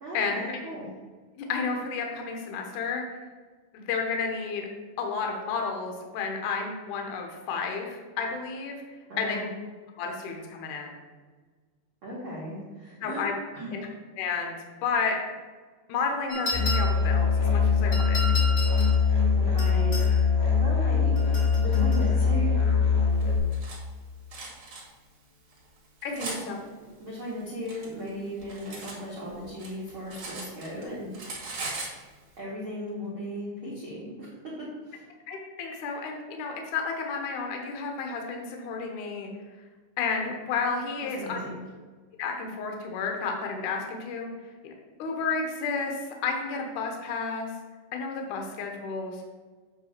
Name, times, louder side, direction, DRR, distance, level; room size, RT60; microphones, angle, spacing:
voice 1, 0.0-0.9 9.1-9.5 12.0-13.2 13.5-13.7 19.4-20.0 20.4-21.2 21.6-22.6 26.2-26.6 27.0-31.1 32.4-35.0 41.1-41.6, equal, 85° right, -7 dB, 1.1 m, -36 dB
voice 2, 1.4-3.0 3.7-4.7 5.0-8.8 9.2-9.4 10.0-11.0 13.0-13.3 13.7-13.9 14.2-14.6 14.8-15.2 15.9-18.2 26.0-26.6 35.3-39.3 40.0-41.4 42.2-44.3 44.6-44.7 45.0-47.5 47.9-49.2, left 5 dB, 85° left, 2 dB, 1.7 m, -31 dB
sound 1, 16.3-17.1 17.9-19.0 19.6-20.1 21.2-22.1, left 1 dB, 25° left, 1.3 m, -33 dB
Musical instrument, 16.5-23.4, left 5 dB, 55° left, 2.6 m, -22 dB
Cutlery silverware, 23.2-23.8 24.3-24.8 25.5-26.4 27.3-29.0 29.3-30.8 31.1-32.0, right 3 dB, 60° right, 1.3 m, -39 dB
8.0 x 3.3 x 6.5 m, 1.4 s
omnidirectional pair, 5.1 m